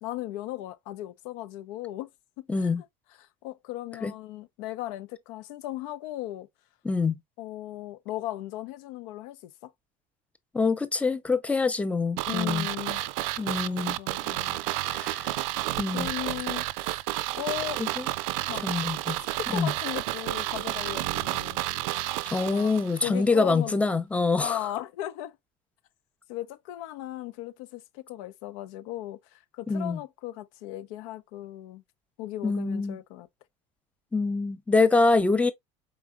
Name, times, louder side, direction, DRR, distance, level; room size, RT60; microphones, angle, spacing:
voice 1, 0.0-2.1 2.6-2.7 3.2-6.5 7.4-9.7 12.3-13.0 13.4-14.6 14.9-15.0 15.9-16.9 17.4-17.8 18.5-18.6 19.3-21.6 22.5-23.9 24.4-25.4 26.3-31.8 32.2-33.3, left 14 dB, 75° left, 0.8 m, -37 dB
voice 2, 2.5-2.8 4.0-4.1 6.8-7.2 10.5-12.7 13.4-14.0 14.8-15.4 15.8-16.1 17.8-18.0 18.6-19.2 19.5-19.7 22.3-24.6 29.7-30.0 32.4-33.0 34.1-35.5, left 3 dB, 10° left, 0.6 m, -25 dB
sound 1, 12.2-23.1 23.4-23.5, right 17 dB, 80° right, 0.4 m, -31 dB
4.8 x 4.1 x 2.3 m
cardioid pair, 145°, 17 cm